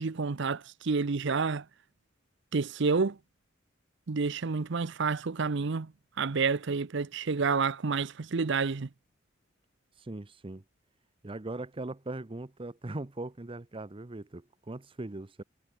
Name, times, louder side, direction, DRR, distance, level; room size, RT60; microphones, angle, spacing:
voice 1, 0.0-1.6 2.5-3.2 4.1-5.9 6.2-8.9, right 4 dB, 65° right, 0.7 m, -29 dB
voice 2, 9.9-10.6 11.2-15.4, right 2 dB, 25° right, 0.7 m, -40 dB
head